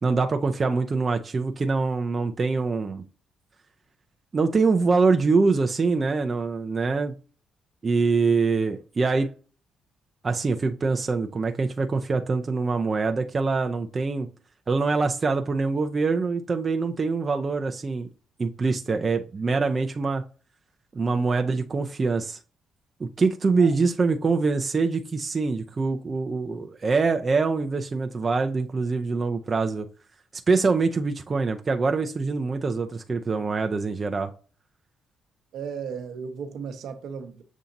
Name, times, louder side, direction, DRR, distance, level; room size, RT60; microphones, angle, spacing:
voice 1, 0.0-3.0 4.3-7.1 7.8-9.3 10.2-14.3 14.7-18.1 18.4-20.2 20.9-22.4 23.0-29.9 30.5-34.3, right 4 dB, 35° right, 0.5 m, -24 dB
voice 2, 35.5-37.4, right 6 dB, 75° right, 0.9 m, -35 dB
7.1 x 2.7 x 2.6 m
cardioid pair, 90°, 0 cm